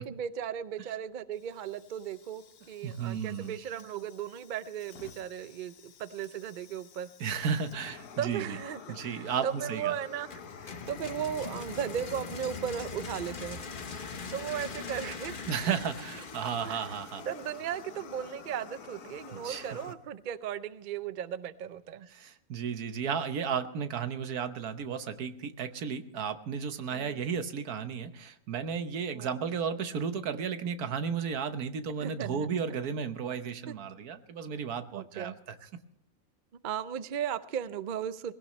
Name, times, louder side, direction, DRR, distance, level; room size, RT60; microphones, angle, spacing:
voice 1, 0.0-7.1 8.2-13.6 14.3-15.5 16.6-16.8 17.3-22.1 26.9-27.2 29.1-29.3 32.0-32.5 33.7-33.8 34.9-35.3 36.6-38.3, right 9 dB, 50° right, 14 dB, 0.6 m, -36 dB
Fire, 1.3-19.9, left 6 dB, 80° left, 1.5 m, -49 dB
voice 2, 2.8-3.5 7.2-8.6 8.9-9.9 15.5-17.3 19.3-19.7 22.1-35.7, right 6 dB, 85° right, 10 dB, 1.5 m, -34 dB
sound 1, 10.3-18.1, left 4 dB, 40° left, 1.1 m, -42 dB
20.0 x 17.0 x 3.1 m, 0.71 s
omnidirectional pair, 1.6 m